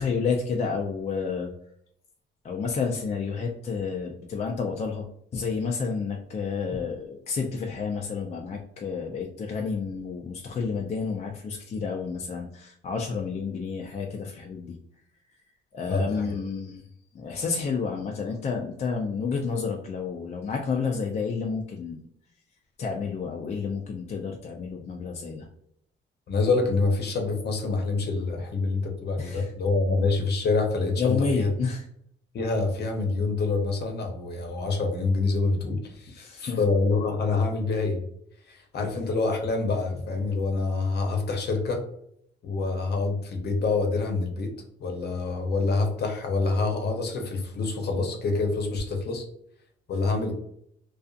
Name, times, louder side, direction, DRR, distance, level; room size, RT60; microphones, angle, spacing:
voice 1, 0.0-1.5 2.4-5.1 5.3-14.8 15.7-16.9 17.1-22.0 22.8-25.5 29.2-29.5 31.0-31.8 36.1-36.6, left 5 dB, 35° left, 1 dB, 0.4 m, -30 dB
voice 2, 15.9-16.3 26.3-31.5 32.3-38.0 38.5-41.8 42.4-44.5 44.8-49.2 49.9-50.3, left 3 dB, 55° left, 3 dB, 0.8 m, -26 dB
2.5 x 2.4 x 2.4 m, 0.70 s
cardioid pair, 90°, 20 cm